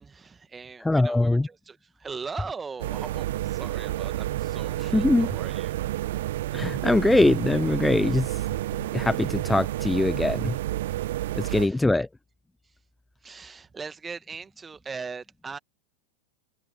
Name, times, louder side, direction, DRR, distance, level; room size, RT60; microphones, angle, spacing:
voice 1, 0.0-5.8 11.5-11.8 13.2-15.6, right 5 dB, 15° right, 2.2 m, -40 dB
voice 2, 0.8-1.5 4.8-5.3 6.5-8.5 8.9-10.6 11.4-12.1, left 2 dB, 5° left, 1.0 m, -22 dB
sound 1, 2.8-11.7, right 15 dB, 55° right, 1.4 m, -30 dB
open air
figure-of-eight pair, 90°, 0 cm